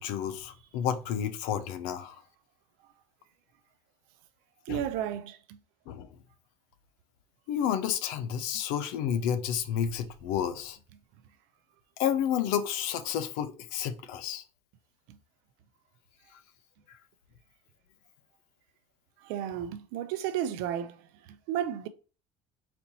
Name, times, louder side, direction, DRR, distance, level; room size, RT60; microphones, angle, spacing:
voice 1, 0.0-2.2 4.7-4.8 5.9-6.1 7.5-10.8 12.0-14.4, left 9 dB, 80° left, 0.6 m, -30 dB
voice 2, 4.7-5.6 19.2-21.0 21.5-21.9, right 10 dB, 80° right, 0.6 m, -33 dB
4.2 x 2.8 x 4.0 m
cardioid pair, 120°, 14 cm